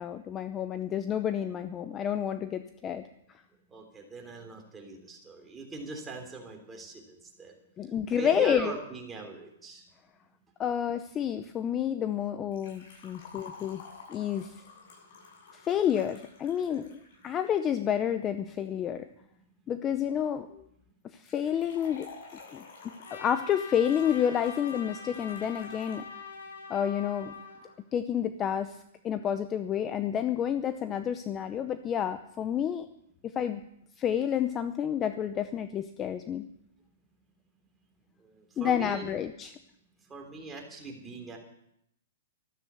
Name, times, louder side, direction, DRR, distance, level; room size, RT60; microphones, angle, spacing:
voice 1, 0.0-3.0 7.8-8.7 10.6-14.5 15.5-19.1 19.7-20.7 21.1-22.1 22.5-22.6 23.1-26.1 26.7-27.3 27.9-28.8 29.0-32.9 33.2-33.6 34.0-36.5 38.6-39.5, left 9 dB, 20° left, 10 dB, 0.6 m, -29 dB
voice 2, 3.7-7.5 8.2-9.8 38.2-39.1 40.1-41.4, right 3 dB, 10° right, 1 dB, 3.3 m, -41 dB
Liquid, 12.5-17.5 21.2-26.0 26.3-26.4 27.3-27.4, left 4 dB, 50° left, 7.8 m, -51 dB
Trumpet, 23.0-27.7, left 6 dB, 90° left, 4.8 m, -43 dB
13.5 x 13.0 x 6.9 m, 0.75 s
hypercardioid pair, 155°, 0 cm